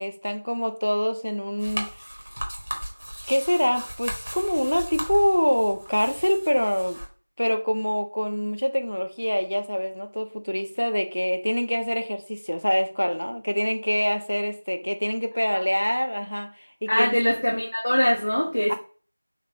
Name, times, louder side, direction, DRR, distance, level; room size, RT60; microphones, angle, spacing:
voice 1, 0.0-1.9 3.3-7.0 7.4-17.2 18.7-18.8, equal, 75° left, 0.7 m, -25 dB
sound 1, 1.6-7.1, equal, 40° right, 0.9 m, -36 dB
voice 2, 16.9-18.7, equal, 40° left, 0.6 m, -22 dB
4.0 x 3.2 x 2.7 m
figure-of-eight pair, 180°, 0 cm